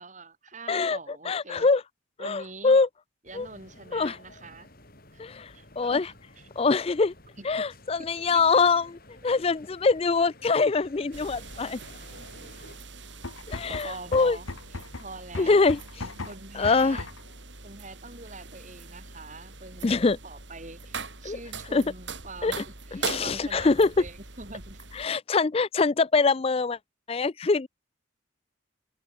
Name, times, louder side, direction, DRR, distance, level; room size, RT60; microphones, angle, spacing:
voice 1, 0.0-1.7 2.2-2.8 3.3-4.7 5.1-5.2 5.5-6.5 7.4-7.5 13.6-15.7 16.3-17.1 17.6-24.8, right 3 dB, 35° right, 4.0 m, -44 dB
voice 2, 0.7-1.0 1.2-1.8 2.2-2.9 3.3-3.5 3.9-4.2 5.2-5.5 5.8-6.1 6.6-7.1 7.4-9.0 9.2-11.8 13.5-14.4 15.4-15.8 16.5-17.0 19.8-20.2 21.2-21.4 21.7-21.9 22.4-22.5 22.9-23.9 25.0-26.8 27.1-27.7, left 4 dB, 30° left, 0.4 m, -23 dB
sound 1, 3.3-12.8, left 2 dB, 45° left, 6.2 m, -52 dB
sound 2, 11.1-25.1, right 4 dB, 65° right, 5.8 m, -42 dB
sound 3, 13.1-17.3, left 2 dB, 85° left, 1.6 m, -39 dB
open air
head